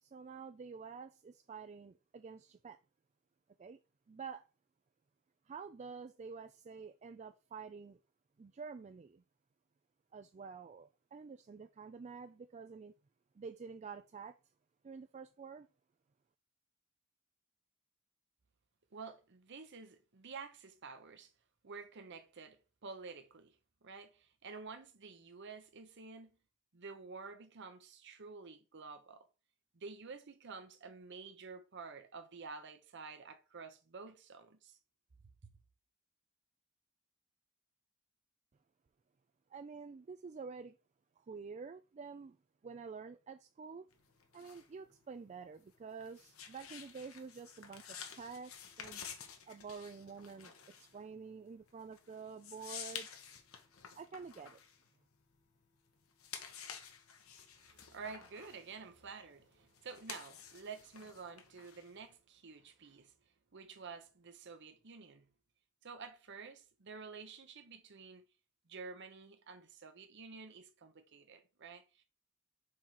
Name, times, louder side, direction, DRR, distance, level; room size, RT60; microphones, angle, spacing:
voice 1, 0.0-2.8 3.6-3.8 4.1-4.5 5.5-8.0 8.4-9.2 10.1-12.9 13.4-14.4 14.8-15.7 39.5-40.8 41.3-42.4 42.6-43.9 44.3-49.0 49.5-53.1 54.0-54.6, right 5 dB, 30° right, 0.3 m, -49 dB
voice 2, 18.9-21.3 21.6-23.6 23.8-26.3 26.7-29.3 29.7-34.8 35.4-35.5 57.6-63.1 63.5-65.3 65.8-68.2 68.7-72.0, right 4 dB, 55° right, 0.8 m, -50 dB
sound 1, 43.9-55.6 56.0-62.1, left 7 dB, 75° left, 1.2 m, -51 dB
4.7 x 4.6 x 5.6 m
head